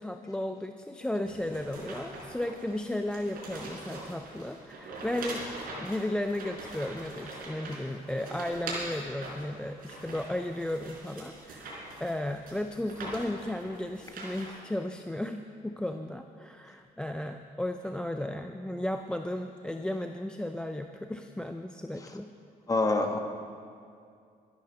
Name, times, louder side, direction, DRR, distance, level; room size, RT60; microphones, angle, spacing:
voice 1, 0.0-5.4 5.8-22.3, left 1 dB, 5° left, 6 dB, 0.4 m, -34 dB
sound 1, 1.2-14.5, right 2 dB, 65° right, 4.1 m, -42 dB
voice 2, 22.7-23.2, left 2 dB, 20° left, 4 dB, 1.1 m, -27 dB
13.0 x 10.5 x 6.2 m, 2.3 s
cardioid pair, 130°, 16 cm